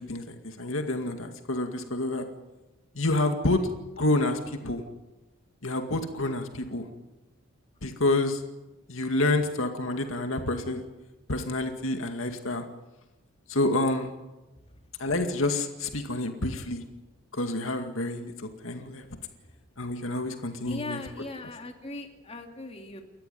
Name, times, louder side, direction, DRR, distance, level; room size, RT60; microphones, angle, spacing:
voice 1, 0.0-2.2 3.0-3.6 3.9-4.8 5.6-6.9 7.8-8.4 8.9-10.8 11.3-12.7 13.5-14.1 15.0-16.8 17.3-19.0 19.8-21.0, left 2 dB, 75° left, 5 dB, 2.2 m, -28 dB
voice 2, 20.7-23.0, left 2 dB, 30° left, 3 dB, 2.6 m, -39 dB
29.5 x 14.5 x 9.3 m, 1.1 s
head